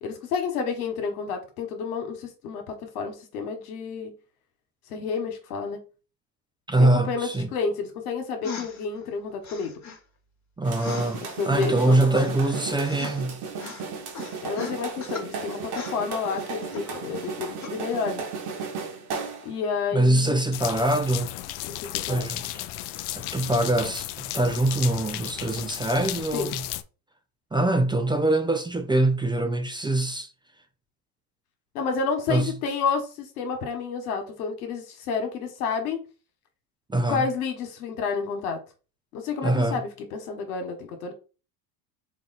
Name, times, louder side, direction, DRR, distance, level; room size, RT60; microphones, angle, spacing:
voice 1, 0.0-4.2 4.9-5.8 6.8-9.7 11.2-12.3 14.4-18.2 19.4-20.4 21.6-22.3 26.3-26.5 31.7-36.0 37.1-38.6 39.1-41.1, left 5 dB, 90° left, 1.2 m, -30 dB
voice 2, 6.7-7.5 10.6-13.4 19.9-21.3 22.1-22.4 23.2-26.6 27.5-30.3 32.3-32.5 36.9-37.3 39.4-39.8, right 1 dB, 10° right, 0.5 m, -23 dB
sound 1, 8.4-8.8 9.4-10.0 10.8-11.7 12.1-13.3 13.6-13.8 14.1-15.3 15.6-17.3 17.6-17.8, left 5 dB, 40° left, 1.4 m, -39 dB
sound 2, 10.6-19.6, right 5 dB, 60° right, 1.4 m, -35 dB
sound 3, 20.5-26.8, left 14 dB, 60° left, 0.5 m, -34 dB
4.2 x 2.3 x 4.0 m
supercardioid pair, 85°, 44 cm